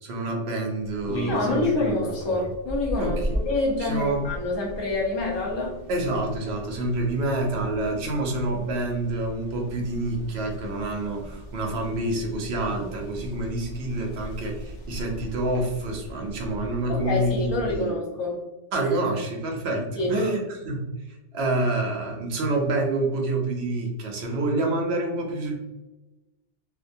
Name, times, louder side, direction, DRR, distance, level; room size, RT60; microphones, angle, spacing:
voice 1, 0.0-1.7 3.0-3.3 3.8-4.3 5.9-17.3 17.6-18.0 18.7-25.6, right 2 dB, 65° right, 1 dB, 0.8 m, -27 dB
sound 1, 0.8-17.8, equal, 60° left, 0.8 m, -36 dB
voice 2, 1.2-5.8 16.9-18.4 20.0-20.3, left 2 dB, 35° left, -2 dB, 0.4 m, -27 dB
2.4 x 2.1 x 2.5 m, 1.1 s
omnidirectional pair, 1.2 m